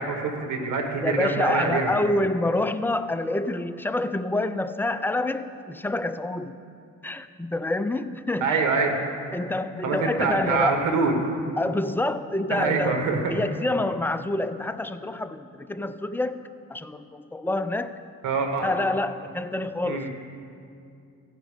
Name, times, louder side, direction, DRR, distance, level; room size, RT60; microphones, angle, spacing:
voice 1, 0.0-1.9 8.4-9.0 9.8-11.1 12.5-13.4 18.2-18.7 19.8-20.1, right 4 dB, 75° right, 4 dB, 1.3 m, -25 dB
voice 2, 1.0-6.6 7.0-8.6 9.3-10.8 11.6-13.0 13.3-16.4 16.7-17.9 18.6-20.1, left 2 dB, 5° left, 10 dB, 0.3 m, -27 dB
15.5 x 5.2 x 4.9 m, 2.5 s
cardioid pair, 90°, 30 cm